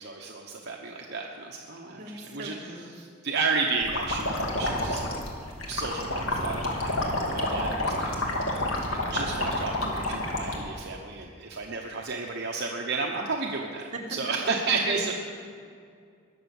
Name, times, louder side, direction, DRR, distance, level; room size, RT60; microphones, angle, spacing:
voice 1, 0.0-2.6 2.9-5.0 5.7-8.1 8.9-15.1, right 4 dB, 55° right, 0 dB, 1.0 m, -32 dB
voice 2, 2.0-2.8 13.9-15.1, right 2 dB, 40° right, -1 dB, 1.9 m, -37 dB
sound 1, 3.8-10.6, left 1 dB, 90° left, 2.2 m, -29 dB
21.0 x 7.0 x 7.2 m, 2.3 s
head